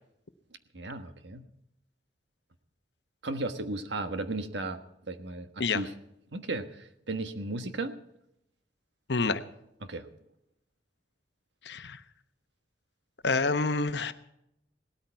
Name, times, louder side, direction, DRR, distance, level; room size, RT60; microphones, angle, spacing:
voice 1, 0.7-1.4 3.2-4.8 5.1-5.9 6.3-7.9 9.8-10.1, right 2 dB, 80° right, 9 dB, 1.4 m, -35 dB
voice 2, 9.1-9.4 11.6-12.0 13.2-14.1, left 4 dB, 70° left, 11 dB, 0.9 m, -27 dB
18.5 x 13.0 x 4.7 m, 0.80 s
head